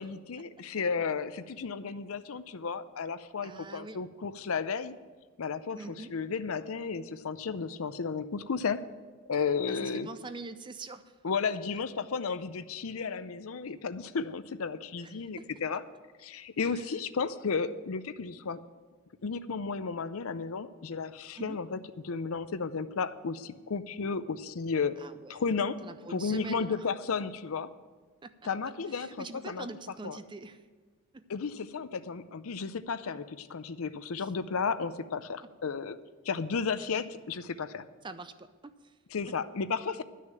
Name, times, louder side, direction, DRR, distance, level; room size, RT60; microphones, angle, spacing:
voice 1, 0.0-4.9 5.4-5.8 6.1-8.8 9.3-10.1 11.2-15.8 16.2-18.6 19.2-21.8 22.0-25.0 25.3-25.8 26.1-27.7 28.5-29.7 30.0-30.2 31.3-36.0 36.2-37.9 39.1-40.0, left 5 dB, 70° left, 13 dB, 0.6 m, -33 dB
voice 2, 3.4-4.0 5.7-6.1 9.7-11.1 15.0-15.5 16.6-16.9 21.4-21.6 25.0-25.4 25.8-26.9 28.2-28.5 28.9-30.6 31.1-31.3 34.2-34.3 35.4-35.5 38.0-38.9 39.3-39.4, right 3 dB, 20° right, 11 dB, 0.5 m, -44 dB
11.0 x 6.5 x 8.8 m, 1.4 s
head